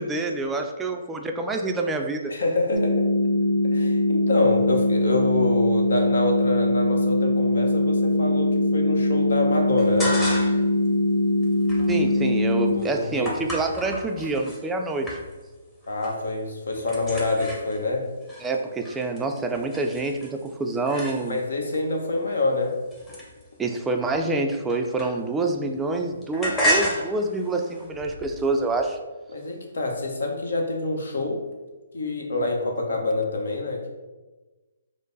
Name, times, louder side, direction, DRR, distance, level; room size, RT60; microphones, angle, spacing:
voice 1, 0.0-2.3 11.9-15.2 18.4-21.4 23.6-29.0, right 2 dB, 10° right, 3 dB, 0.3 m, -27 dB
voice 2, 2.3-3.0 3.7-10.1 12.7-13.3 15.9-18.0 21.3-22.7 29.3-31.4 31.9-33.9, left 2 dB, 75° left, 1 dB, 0.9 m, -26 dB
sound 1, 2.7-12.7, left 1 dB, 90° right, 0.6 m, -22 dB
sound 2, 9.8-10.7 11.1-14.6 15.1-15.6 15.8-16.3 16.5-21.6 22.2-25.5 25.8-29.0, equal, 10° left, 0.8 m, -32 dB
5.1 x 2.0 x 3.9 m, 1.2 s
hypercardioid pair, 150°, 0 cm